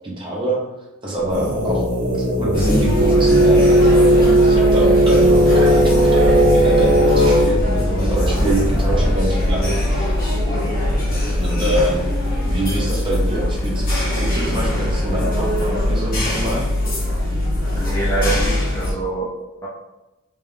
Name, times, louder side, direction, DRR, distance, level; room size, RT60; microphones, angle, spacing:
voice 1, 0.2-0.6 1.0-1.8 2.2-10.1 11.4-12.1 12.4-16.7, right 1 dB, 20° right, -4 dB, 0.9 m, -25 dB
sound 1, 1.3-7.5, right 1 dB, 85° right, 0.9 m, -15 dB
sound 2, 2.5-18.9, left 1 dB, 40° left, 1.2 m, -21 dB
voice 2, 17.7-19.3 19.6-19.7, right 2 dB, 15° left, -5 dB, 0.5 m, -25 dB
3.4 x 3.1 x 3.6 m, 0.98 s
head